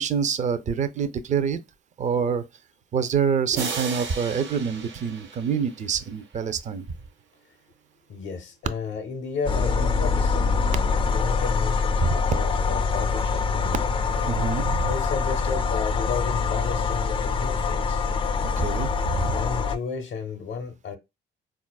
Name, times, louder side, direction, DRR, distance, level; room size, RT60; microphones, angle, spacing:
voice 1, 0.0-1.6 2.0-2.4 2.9-6.9 12.0-12.1 14.2-14.9 18.6-19.3, right 6 dB, 40° right, 0.4 m, -26 dB
sound 1, 3.5-6.2, right 5 dB, 65° right, 0.7 m, -35 dB
voice 2, 8.1-13.8 14.9-18.0 19.2-21.0, left 5 dB, 65° left, 0.6 m, -33 dB
sound 2, 9.5-19.8, left 5 dB, 25° left, 0.3 m, -24 dB
4.0 x 2.4 x 2.2 m
cardioid pair, 90°, 20 cm